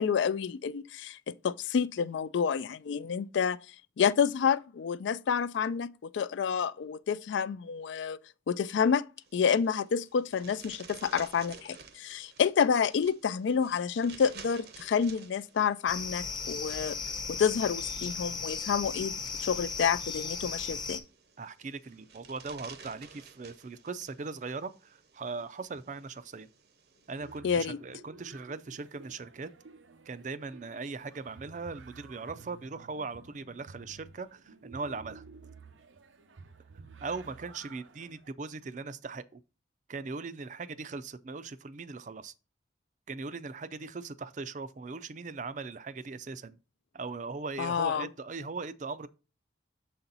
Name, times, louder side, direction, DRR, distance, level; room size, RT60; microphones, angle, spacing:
voice 1, 0.0-3.6 4.0-8.2 8.5-9.1 9.3-17.0 17.3-19.1 19.4-21.0 27.4-27.8 47.6-48.1, left 7 dB, 75° left, 0.3 m, -29 dB
sound 1, 9.2-27.4, right 6 dB, 55° right, 0.8 m, -54 dB
sound 2, 15.9-21.0, left 5 dB, 25° left, 0.7 m, -36 dB
voice 2, 21.4-26.5 27.1-29.5 30.1-35.2 37.0-39.4 39.9-42.3 43.1-46.6 46.9-49.1, right 4 dB, 40° right, 0.4 m, -39 dB
sound 3, 27.2-38.3, right 4 dB, 90° right, 0.7 m, -53 dB
6.8 x 4.2 x 3.9 m
head